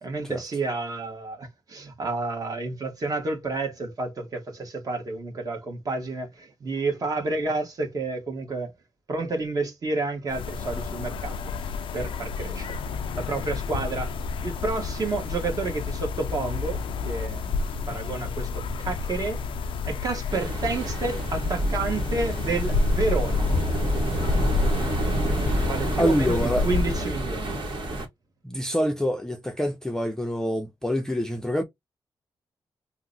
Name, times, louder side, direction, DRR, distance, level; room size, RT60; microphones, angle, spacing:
voice 1, 0.0-8.7 9.1-12.8 13.1-14.1 14.4-17.5 17.9-19.4 19.9-23.5 25.6-27.5, right 3 dB, 45° right, 1.1 m, -30 dB
sound 1, 10.3-27.2, left 4 dB, 85° left, 0.4 m, -30 dB
sound 2, 20.3-28.1, equal, 65° right, 1.2 m, -28 dB
voice 2, 26.0-26.7 28.4-31.6, equal, 5° left, 0.5 m, -26 dB
2.8 x 2.0 x 3.7 m
wide cardioid pair, 150°, 9 cm